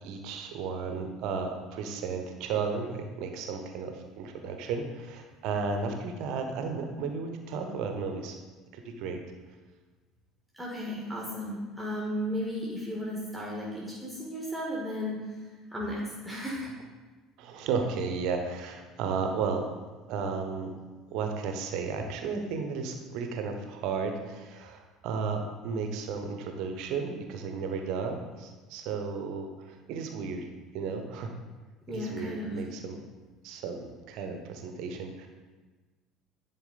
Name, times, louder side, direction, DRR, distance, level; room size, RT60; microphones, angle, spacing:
voice 1, 0.0-8.4 8.7-9.2 17.4-19.8 20.1-20.8 21.1-30.5 30.7-31.3 31.9-33.0 33.4-35.3, right 5 dB, 55° right, 5 dB, 0.9 m, -34 dB
voice 2, 10.6-15.2 15.7-16.7 31.9-32.5, equal, 5° right, -4 dB, 1.6 m, -34 dB
10.0 x 4.3 x 4.0 m, 1.3 s
figure-of-eight pair, 60°, 0 cm